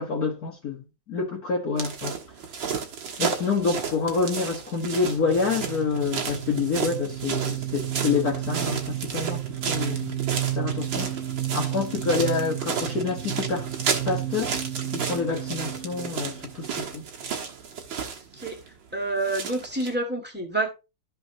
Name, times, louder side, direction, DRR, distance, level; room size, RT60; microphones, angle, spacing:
voice 1, 0.0-2.2 3.2-10.2 10.5-11.1 11.5-13.7 14.0-14.5 14.9-17.0, left 4 dB, 55° left, 1.5 m, -27 dB
sound 1, 1.8-19.9, right 6 dB, 80° right, 2.0 m, -33 dB
sound 2, 4.9-17.3, right 13 dB, 60° right, 0.7 m, -32 dB
voice 2, 18.9-20.7, right 2 dB, 5° right, 1.8 m, -28 dB
14.0 x 4.6 x 2.8 m
omnidirectional pair, 2.1 m